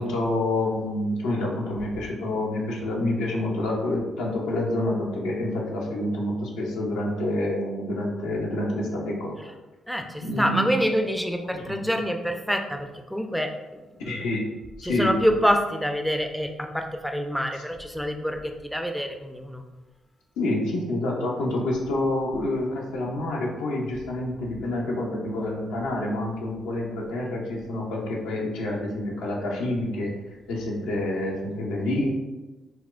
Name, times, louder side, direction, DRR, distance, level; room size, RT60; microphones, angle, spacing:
voice 1, 0.0-9.5 10.2-10.7 11.4-11.9 14.1-14.5 14.8-15.2 20.4-30.1 30.5-32.1, left 1 dB, 80° left, -2 dB, 0.6 m, -28 dB
voice 2, 9.9-13.5 14.1-14.2 14.8-19.6, equal, ahead, 4 dB, 0.4 m, -26 dB
4.2 x 2.1 x 2.4 m, 1.1 s
hypercardioid pair, 45°, 0 cm